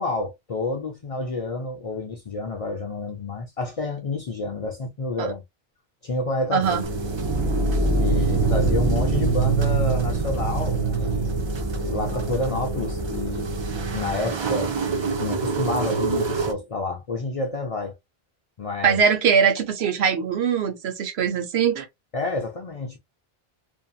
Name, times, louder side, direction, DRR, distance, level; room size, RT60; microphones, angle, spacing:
voice 1, 0.0-5.4 6.0-6.8 8.0-11.3 11.8-13.5 13.9-14.7 15.2-17.9 18.6-19.0 22.1-23.0, left 3 dB, 55° left, 0.4 m, -29 dB
voice 2, 6.5-6.8 18.8-21.9, right 7 dB, 85° right, 1.0 m, -21 dB
sound 1, 6.6-16.5, right 4 dB, 50° right, 0.3 m, -29 dB
sound 2, 6.9-14.1, right 3 dB, 35° right, 0.8 m, -25 dB
2.6 x 2.6 x 2.3 m
omnidirectional pair, 1.1 m